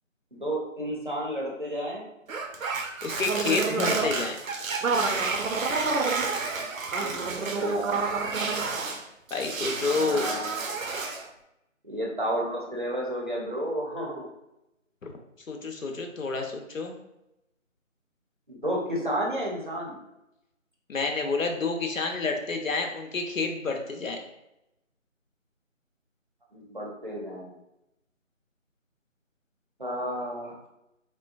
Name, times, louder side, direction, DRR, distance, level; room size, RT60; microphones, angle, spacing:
voice 1, 0.3-2.1 6.6-6.7 7.0-8.0 10.0-10.8 11.8-14.3 18.5-20.0 26.5-27.6 29.8-30.5, equal, 40° right, -3 dB, 0.6 m, -32 dB
sound 1, 2.3-9.0 9.3-11.3, right 4 dB, 80° right, 0.6 m, -29 dB
voice 2, 3.0-4.4 9.3-10.3 15.0-15.1 15.5-17.0 20.9-24.2, left 4 dB, 80° left, 3 dB, 0.7 m, -29 dB
3.7 x 2.2 x 2.4 m, 0.87 s
figure-of-eight pair, 175°, 40 cm